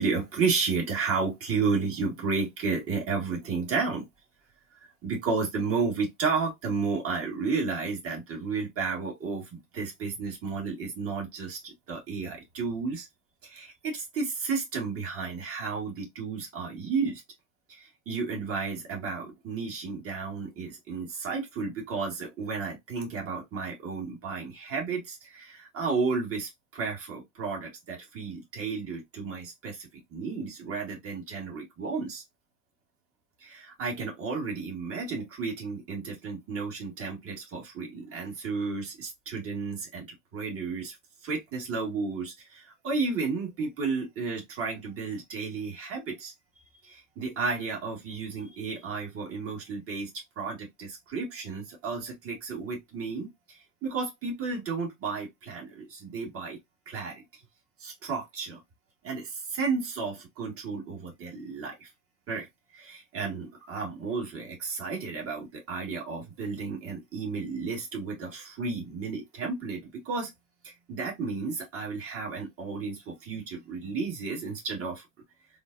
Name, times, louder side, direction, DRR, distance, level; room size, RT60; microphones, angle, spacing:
voice 1, 0.0-4.1 5.0-13.1 13.4-17.2 17.7-32.2 33.4-40.1 40.3-41.0 41.2-46.3 46.8-50.1 50.3-56.6 56.9-57.2 57.8-58.6 59.0-61.9 62.3-62.5 62.7-70.3 70.6-75.0, right 4 dB, 35° right, 1.6 m, -32 dB
3.7 x 2.1 x 2.4 m
hypercardioid pair, 95°, 41 cm